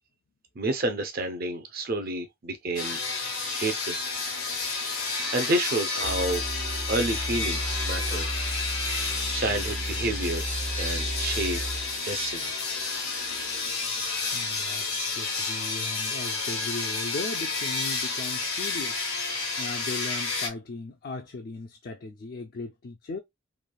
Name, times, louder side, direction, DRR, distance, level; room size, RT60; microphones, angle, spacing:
voice 1, 0.6-3.0 3.6-4.0 4.8-6.4 6.9-8.3 9.0-10.5 10.8-11.6 12.0-12.5, right 2 dB, 45° right, 0.5 m, -30 dB
sound 1, 2.8-20.5, left 4 dB, 85° left, 1.0 m, -30 dB
sound 2, 6.0-13.5, right 1 dB, 90° right, 0.8 m, -34 dB
voice 2, 14.3-14.9 15.1-23.2, left 3 dB, 45° left, 0.4 m, -38 dB
3.2 x 2.4 x 2.2 m
head